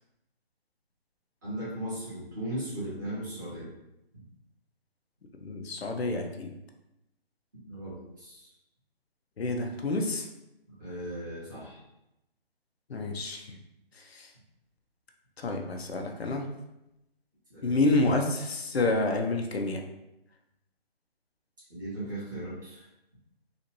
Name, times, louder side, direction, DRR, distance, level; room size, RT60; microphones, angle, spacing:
voice 1, 1.4-3.7 7.6-8.5 10.8-11.8 17.5-17.7 21.7-22.8, right 1 dB, 20° right, -10 dB, 1.2 m, -37 dB
voice 2, 5.4-6.5 9.4-10.3 12.9-13.6 14.0-14.3 15.4-16.4 17.6-19.8, left 2 dB, 75° left, 3 dB, 0.7 m, -28 dB
3.9 x 2.5 x 2.9 m, 0.88 s
hypercardioid pair, 170°, 31 cm